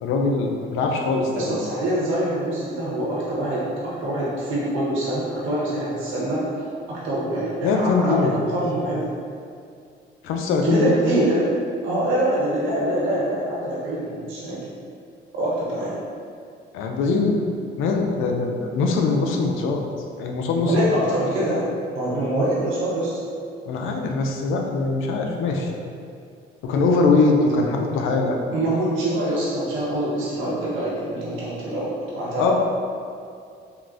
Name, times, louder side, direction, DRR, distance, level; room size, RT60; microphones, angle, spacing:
voice 1, 0.0-1.6 7.6-8.5 10.2-11.3 16.7-17.4 17.8-19.8 20.2-20.9 23.7-25.7 26.6-28.4 32.4-32.5, left 3 dB, 90° left, 2 dB, 0.4 m, -22 dB
voice 2, 1.3-9.1 10.6-14.7 15.3-16.0 20.6-23.1 28.5-32.5, right 1 dB, 85° right, -6 dB, 0.9 m, -25 dB
3.6 x 2.4 x 2.4 m, 2.3 s
cardioid pair, 90°, 20 cm